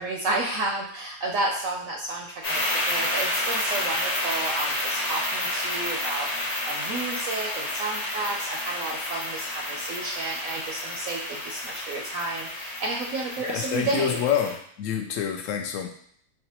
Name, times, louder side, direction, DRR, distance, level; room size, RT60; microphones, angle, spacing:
voice 1, 0.0-14.3, right 2 dB, 70° right, -1 dB, 0.8 m, -31 dB
sound 1, 2.4-14.5, left 1 dB, 45° left, 0.5 m, -30 dB
voice 2, 13.5-15.9, left 9 dB, 65° left, 4 dB, 0.8 m, -27 dB
4.7 x 2.1 x 2.9 m, 0.63 s
omnidirectional pair, 1.7 m